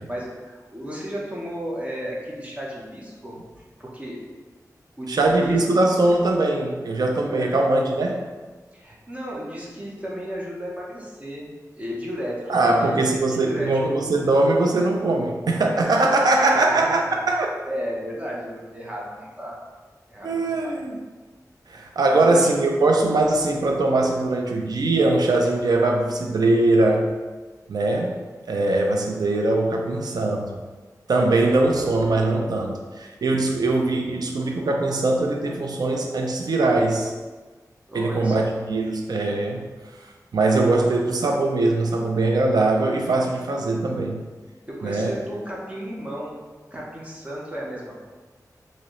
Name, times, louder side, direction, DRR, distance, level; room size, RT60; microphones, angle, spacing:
voice 1, 0.0-3.4 3.8-4.2 5.0-5.6 7.3-7.6 8.7-11.5 11.8-13.0 13.4-13.7 16.5-16.8 17.1-17.2 17.7-19.6 20.1-20.7 22.1-22.4 37.9-38.5 40.9-41.0 44.7-46.4 46.7-48.1, equal, 20° right, -4 dB, 0.9 m, -34 dB
voice 2, 5.1-8.2 12.5-17.5 20.2-21.0 21.7-27.2 27.7-28.2 28.5-30.6 31.1-37.1 37.9-39.7 40.3-44.2 44.8-45.1, right 2 dB, 85° right, 2 dB, 0.5 m, -21 dB
3.8 x 2.7 x 3.1 m, 1.3 s
wide cardioid pair, 95°, 7 cm